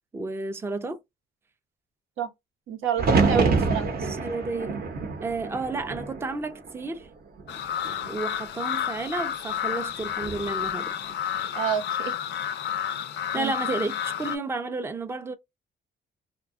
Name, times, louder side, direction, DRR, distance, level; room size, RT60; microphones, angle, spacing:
voice 1, 0.1-1.0 3.3-4.8 5.2-7.1 8.1-11.2 13.3-15.3, right 3 dB, 10° right, 0.4 m, -32 dB
voice 2, 2.7-4.0 11.5-12.1 13.3-13.9, right 8 dB, 85° right, 0.8 m, -29 dB
sound 1, 3.0-7.0 7.4-8.1 10.0-10.5, right 4 dB, 50° right, 0.7 m, -27 dB
sound 2, 7.5-14.4, left 9 dB, 65° left, 0.4 m, -31 dB
2.7 x 2.2 x 2.4 m
cardioid pair, 90°, 20 cm